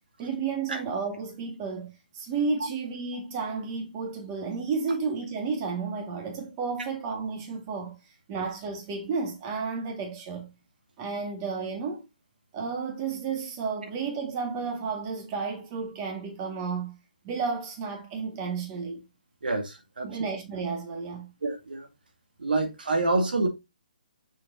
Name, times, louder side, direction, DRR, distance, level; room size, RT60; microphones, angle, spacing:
voice 1, 0.2-8.0 8.3-10.5 11.0-12.0 12.5-17.0 17.2-19.0 20.0-21.3, right 5 dB, 25° right, 1.7 m, -32 dB
voice 2, 19.4-20.1 21.4-21.9 22.4-23.5, right 2 dB, 85° right, 2.1 m, -27 dB
6.7 x 4.4 x 3.8 m
hypercardioid pair, 160°, 5 cm